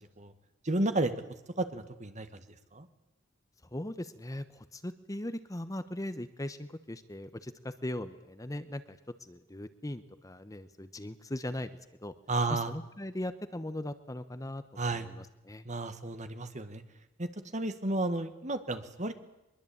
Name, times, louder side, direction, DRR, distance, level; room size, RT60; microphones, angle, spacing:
voice 1, 0.6-1.1 1.6-2.3 2.7-2.9 12.3-12.7 14.8-15.1 15.7-16.8 17.2-19.1, right 2 dB, 40° right, 10 dB, 1.8 m, -32 dB
voice 2, 3.7-11.7 12.0-12.1 12.5-15.6, left 1 dB, 20° left, 11 dB, 1.0 m, -39 dB
23.0 x 22.0 x 8.8 m, 0.91 s
head